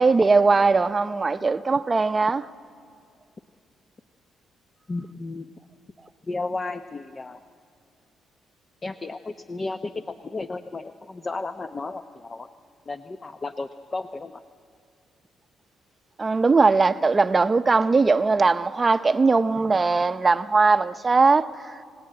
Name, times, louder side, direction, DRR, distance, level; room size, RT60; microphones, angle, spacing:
voice 1, 0.0-2.4 16.2-21.7, right 4 dB, 30° right, 0.7 m, -20 dB
voice 2, 4.9-5.5 6.3-7.4 8.8-12.5 12.9-14.3, left 3 dB, 30° left, 0.8 m, -33 dB
27.0 x 18.0 x 9.0 m
cardioid pair, 90°, 0 cm